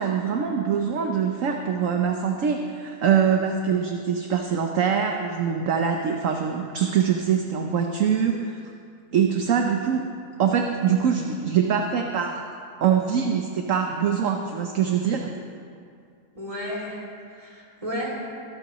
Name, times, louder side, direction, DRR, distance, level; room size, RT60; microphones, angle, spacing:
voice 1, 0.0-8.6 9.1-10.1 10.4-12.4 12.8-15.3, right 7 dB, 60° right, 3 dB, 1.1 m, -23 dB
voice 2, 16.3-18.2, equal, 20° right, -4 dB, 2.8 m, -33 dB
22.5 x 12.5 x 3.1 m, 2.3 s
omnidirectional pair, 1.6 m